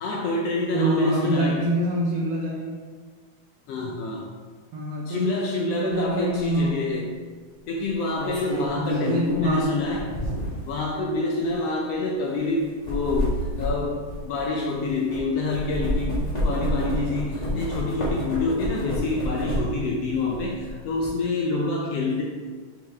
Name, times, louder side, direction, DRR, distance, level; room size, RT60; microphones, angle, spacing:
voice 1, 0.0-1.6 3.7-4.3 5.1-7.1 7.7-10.1 10.7-14.0 14.2-22.2, left 2 dB, 75° left, -2 dB, 1.5 m, -27 dB
voice 2, 0.7-2.7 4.7-6.8 8.8-9.8, right 1 dB, 70° right, -3 dB, 1.6 m, -26 dB
sound 1, 6.3-6.5 7.8-10.7 11.4-11.5 12.6-15.2 15.5-19.9 20.2-21.1, equal, 25° left, 0.8 m, -29 dB
6.1 x 5.0 x 3.6 m, 1.5 s
omnidirectional pair, 3.4 m